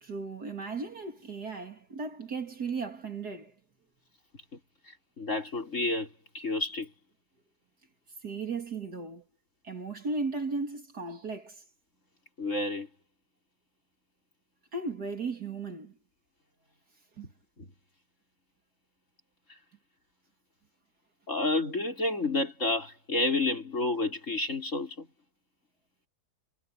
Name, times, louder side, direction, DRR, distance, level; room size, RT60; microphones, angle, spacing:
voice 1, 0.0-3.5 8.2-9.2 9.6-11.6 14.7-15.9 17.2-17.3, right 4 dB, 50° right, 2.9 m, -36 dB
voice 2, 4.9-6.1 6.3-6.9 12.4-12.9 17.2-17.3 17.6-17.7 21.3-25.1, left 2 dB, 35° left, 5.7 m, -30 dB
omnidirectional pair, 2.2 m